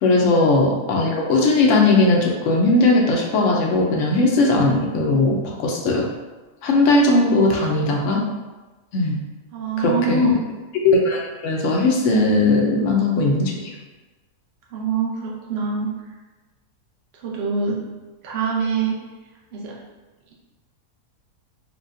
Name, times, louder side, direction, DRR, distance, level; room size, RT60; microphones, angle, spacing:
voice 1, 0.0-6.0 6.6-8.2 8.9-9.2 9.8-10.4 10.8-13.7, left 2 dB, 70° left, 0 dB, 0.7 m, -18 dB
voice 2, 9.5-10.3 14.7-15.9 17.2-17.8 18.2-19.0 19.5-19.8, right 4 dB, 55° right, -3 dB, 0.7 m, -24 dB
4.8 x 2.2 x 2.5 m, 1.2 s
omnidirectional pair, 1.7 m